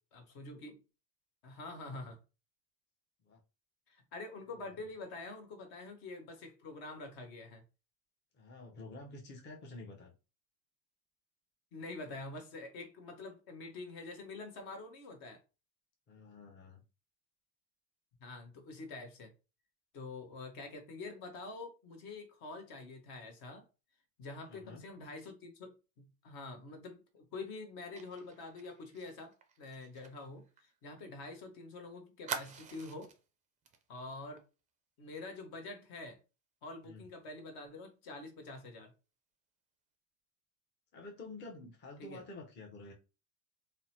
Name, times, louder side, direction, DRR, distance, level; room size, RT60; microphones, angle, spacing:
voice 1, 0.1-0.8 1.4-2.2 3.9-7.6 11.7-15.4 18.2-19.3 19.9-23.6 24.2-33.1 33.9-34.4 35.0-36.2 36.6-38.9 42.0-42.2, left 3 dB, 55° left, 1.0 m, -46 dB
voice 2, 8.3-10.1 16.1-16.8 24.5-24.8 36.8-37.0 40.9-42.9, left 2 dB, 25° left, 0.7 m, -49 dB
Fire, 28.0-31.4 31.7-31.8 32.3-33.2 33.7-33.8 34.1-34.4, right 7 dB, 20° right, 0.3 m, -45 dB
2.8 x 2.0 x 2.8 m
hypercardioid pair, 95°, 43 cm